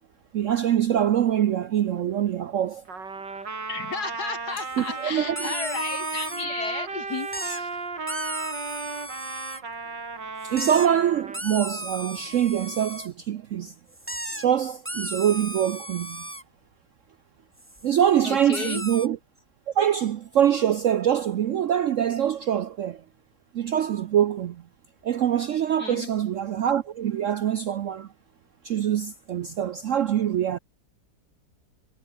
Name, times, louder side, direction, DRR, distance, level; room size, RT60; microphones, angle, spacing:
voice 1, 0.3-2.8 4.8-5.5 10.4-13.7 14.4-16.2 17.8-19.2 19.8-23.0 23.5-24.6 25.0-28.1 28.6-30.6, right 10 dB, 65° right, 0.8 m, -24 dB
Trumpet, 2.9-11.4, right 4 dB, 85° right, 4.3 m, -34 dB
voice 2, 3.7-7.8 18.2-18.8 25.8-26.1, left 5 dB, 65° left, 2.9 m, -33 dB
sound 1, 4.7-4.9 5.4-6.5 7.2-7.6 8.1-9.6 10.4-10.9 11.3-13.1 13.9-14.4 14.8-16.4 17.6-18.1 18.5-19.1, right 1 dB, 5° right, 2.6 m, -35 dB
omnidirectional pair, 1.9 m